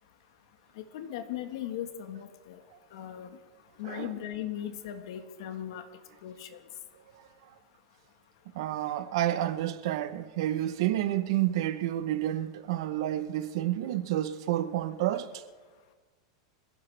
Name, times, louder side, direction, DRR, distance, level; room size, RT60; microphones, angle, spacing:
voice 1, 0.8-2.6 2.9-3.4 3.8-5.8 6.2-6.6, left 11 dB, 55° left, 1.4 m, -38 dB
voice 2, 8.5-15.4, right 13 dB, 50° right, 0.8 m, -30 dB
25.5 x 16.0 x 3.3 m
supercardioid pair, 170°, 3 cm